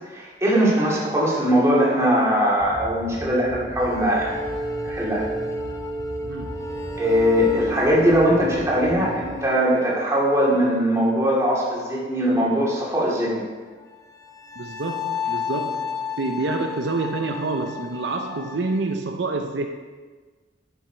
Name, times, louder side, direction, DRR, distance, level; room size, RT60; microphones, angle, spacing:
voice 1, 0.1-4.3 4.8-5.3 7.0-13.4, equal, 15° right, -6 dB, 2.3 m, -20 dB
sound 1, 2.6-9.3, equal, 45° left, 1.6 m, -39 dB
sound 2, 3.8-11.7 13.7-18.9, left 2 dB, 20° left, 0.8 m, -33 dB
voice 2, 6.2-6.7 14.6-19.7, right 3 dB, 75° right, 4 dB, 0.6 m, -27 dB
10.5 x 6.0 x 4.4 m, 1.4 s
head